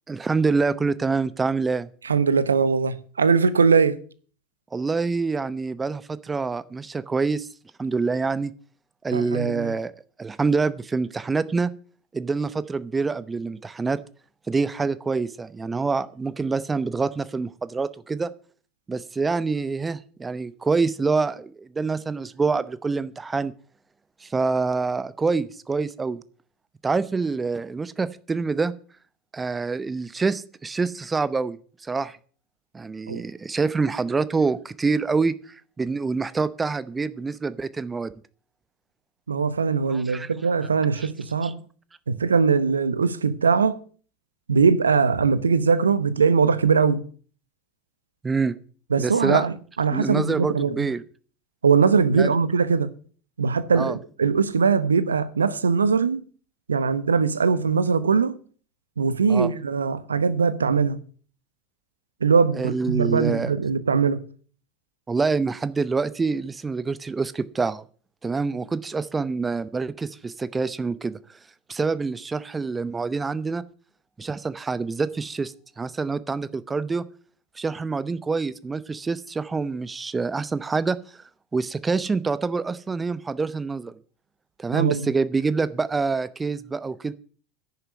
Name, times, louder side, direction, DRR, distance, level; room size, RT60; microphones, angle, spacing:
voice 1, 0.1-1.9 4.7-7.5 7.8-8.5 9.0-9.9 10.2-11.7 12.1-14.0 14.5-18.3 18.9-23.5 24.2-26.2 26.8-28.7 29.3-32.2 32.7-38.1 39.9-40.3 41.0-41.1 41.4-41.5 48.2-48.6 49.0-49.5 49.9-51.0 52.1-52.4 53.7-54.0 59.3-59.5 62.5-63.5 65.1-67.8 68.2-71.4 71.7-73.6 74.2-77.0 77.6-81.2 81.5-83.9 84.6-87.1, right 4 dB, 20° right, 0.8 m, -26 dB
voice 2, 2.0-4.0 9.1-9.7 33.1-33.2 39.3-41.6 42.1-43.8 44.5-47.0 48.9-50.9 51.6-52.9 53.4-56.2 56.7-58.4 59.0-61.0 62.2-64.2 84.7-85.1, right 5 dB, 85° right, 0.8 m, -21 dB
10.5 x 7.0 x 9.4 m
hypercardioid pair, 80°, 0 cm